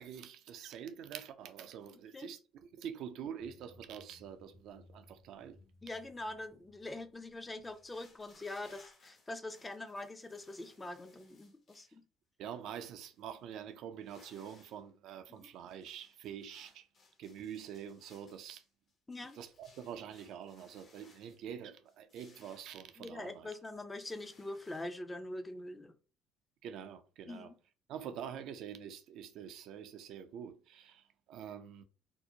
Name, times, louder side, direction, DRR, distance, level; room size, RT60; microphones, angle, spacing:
voice 1, 0.0-5.6 12.4-16.9 17.2-18.6 19.3-23.5 26.6-27.5 27.9-31.8, right 8 dB, 65° right, 0.4 m, -46 dB
sound 1, 3.4-8.9, left 2 dB, 85° left, 0.9 m, -64 dB
voice 2, 5.8-12.0 15.3-15.4 19.1-19.4 23.0-26.0 27.3-27.5, left 2 dB, 20° left, 0.5 m, -44 dB
sound 2, 7.6-11.9 12.5-12.6 12.9-13.4 13.9-14.8 15.1-21.4 21.9-23.4 23.7-25.0, left 3 dB, 50° left, 0.9 m, -65 dB
2.6 x 2.0 x 2.7 m
supercardioid pair, 70°, 0 cm